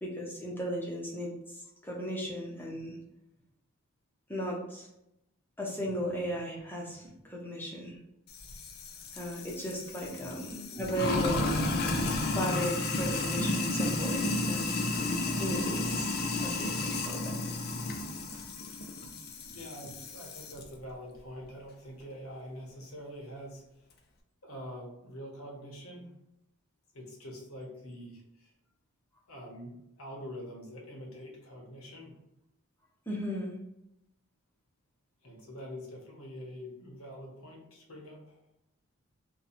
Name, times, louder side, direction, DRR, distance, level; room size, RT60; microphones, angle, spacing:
voice 1, 0.0-3.0 4.3-4.9 5.6-8.0 9.1-11.6 12.3-14.7 14.9-16.1 16.4-17.3 18.3-18.4 19.3-19.6 33.1-33.5, equal, 10° left, -3 dB, 0.7 m, -36 dB
Sink (filling or washing), 8.3-20.6, left 2 dB, 45° left, 0.4 m, -32 dB
voice 2, 19.5-23.6 24.4-26.1 26.9-28.5 29.3-32.1 35.2-38.4, equal, 75° left, -1 dB, 1.0 m, -45 dB
2.7 x 2.3 x 4.1 m, 0.83 s
head